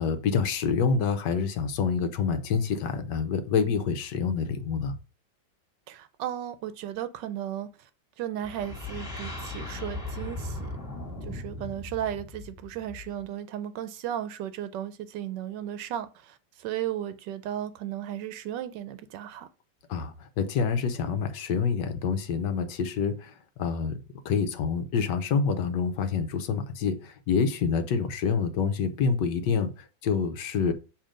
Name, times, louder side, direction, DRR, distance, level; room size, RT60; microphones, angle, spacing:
voice 1, 0.0-5.0 19.9-24.0 24.2-30.7, left 5 dB, 70° left, 1.3 m, -27 dB
voice 2, 5.9-7.9 8.2-10.7 11.2-19.5, right 11 dB, 75° right, 1.1 m, -35 dB
sound 1, 8.4-13.3, left 2 dB, 10° left, 1.9 m, -38 dB
7.0 x 2.9 x 5.0 m
omnidirectional pair, 2.1 m